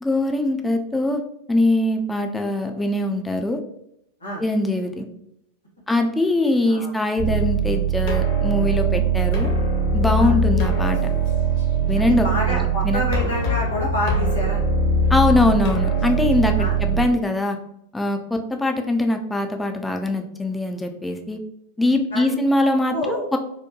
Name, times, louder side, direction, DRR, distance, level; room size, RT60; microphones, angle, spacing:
voice 1, 0.0-1.2 1.5-3.6 4.4-5.1 5.9-9.5 9.9-11.0 11.9-13.0 15.1-17.6 17.9-21.4 21.8-23.4, left 2 dB, 5° left, 4 dB, 0.4 m, -22 dB
sound 1, 7.2-17.0, right 4 dB, 55° left, 0.9 m, -21 dB
voice 2, 11.9-14.6 16.6-16.7 22.1-22.3 22.9-23.2, left 1 dB, 80° left, -4 dB, 1.4 m, -27 dB
4.6 x 2.1 x 3.0 m, 0.77 s
figure-of-eight pair, 90°, 0 cm